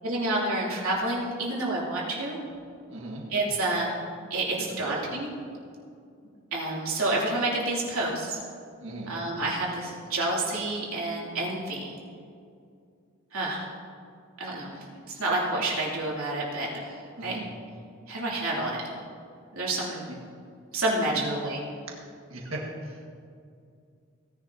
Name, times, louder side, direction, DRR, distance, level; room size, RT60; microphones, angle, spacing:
voice 1, 0.0-2.4 3.3-3.9 4.3-5.3 6.5-8.4 9.1-12.0 13.3-13.7 14.4-14.8 15.1-17.4 18.1-18.9 19.5-20.0 20.7-21.6, right 2 dB, 90° right, -4 dB, 3.1 m, -29 dB
voice 2, 2.9-3.2 4.7-5.0 8.8-9.1 17.2-17.4 21.2-21.5 22.3-23.1, right 2 dB, 70° right, -2 dB, 1.8 m, -37 dB
17.5 x 10.5 x 2.8 m, 2.4 s
head